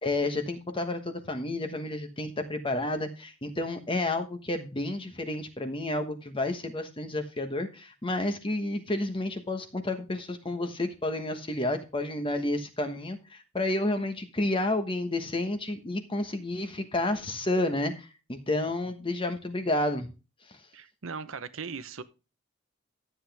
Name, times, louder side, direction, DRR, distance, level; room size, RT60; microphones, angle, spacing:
voice 1, 0.0-20.1 20.5-20.6, left 2 dB, 25° left, 1.2 m, -30 dB
voice 2, 20.7-22.0, right 5 dB, 75° right, 0.8 m, -38 dB
12.5 x 8.0 x 3.4 m
head